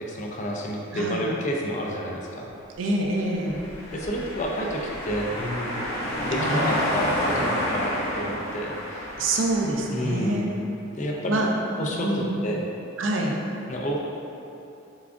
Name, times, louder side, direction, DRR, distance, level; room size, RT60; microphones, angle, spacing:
voice 1, 0.0-2.5 3.9-5.8 6.2-9.1 9.9-10.5 11.0-11.4 11.8-12.6 13.7-14.0, equal, 35° left, -1 dB, 0.4 m, -29 dB
voice 2, 0.9-1.3 2.8-3.6 6.4-6.9 9.2-10.5 11.3-11.5 11.9-12.4 13.0-13.4, right 1 dB, 65° right, 0 dB, 0.5 m, -26 dB
sound 1, 3.3-10.1, equal, 80° left, 1.0 m, -30 dB
6.8 x 2.4 x 2.4 m, 2.8 s
head